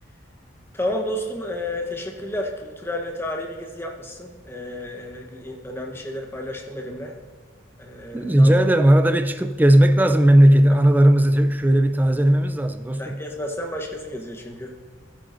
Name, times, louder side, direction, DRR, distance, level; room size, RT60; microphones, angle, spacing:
voice 1, 0.7-7.1 7.8-8.5 13.0-14.8, left 1 dB, 10° left, 1.0 m, -31 dB
voice 2, 8.1-13.2, right 1 dB, 10° right, 0.4 m, -16 dB
14.5 x 9.0 x 2.6 m
head